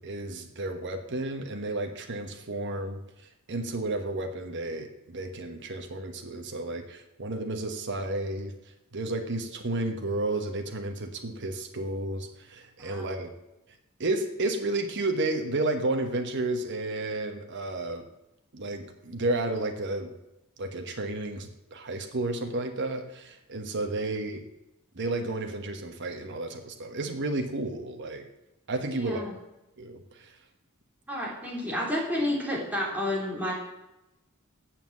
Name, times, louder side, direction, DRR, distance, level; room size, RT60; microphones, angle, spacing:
voice 1, 0.0-3.0 3.5-8.5 8.9-13.3 14.0-18.0 18.5-20.1 20.6-24.4 24.9-28.2 28.7-29.2 29.8-30.4, right 2 dB, 55° right, 4 dB, 1.2 m, -32 dB
voice 2, 12.8-13.1 28.9-29.3 31.1-33.5, left 1 dB, 5° right, -4 dB, 3.2 m, -30 dB
8.8 x 7.3 x 7.4 m, 0.93 s
head